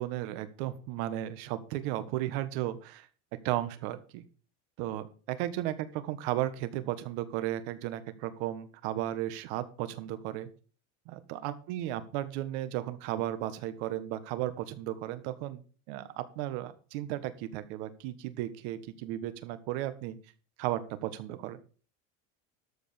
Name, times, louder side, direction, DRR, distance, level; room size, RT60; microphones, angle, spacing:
voice 1, 0.0-3.1 3.4-4.2 4.8-5.7 6.0-10.5 11.1-15.6 15.9-20.2 20.6-21.6, right 13 dB, 65° right, 13 dB, 1.5 m, -35 dB
13.0 x 5.2 x 6.8 m, 0.39 s
supercardioid pair, 150°, 35 cm